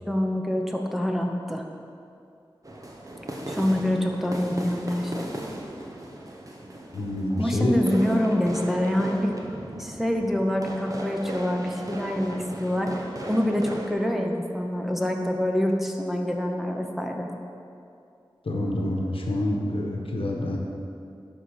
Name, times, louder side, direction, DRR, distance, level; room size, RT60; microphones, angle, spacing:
voice 1, 0.1-1.6 3.5-5.3 7.4-9.3 9.8-17.3, left 1 dB, ahead, 1 dB, 0.8 m, -26 dB
sound 1, 2.6-13.9, right 1 dB, 40° right, 1.0 m, -37 dB
voice 2, 6.9-7.7 18.4-20.6, left 1 dB, 85° left, 0 dB, 1.0 m, -27 dB
11.5 x 4.1 x 4.8 m, 2.5 s
wide cardioid pair, 50°, 9 cm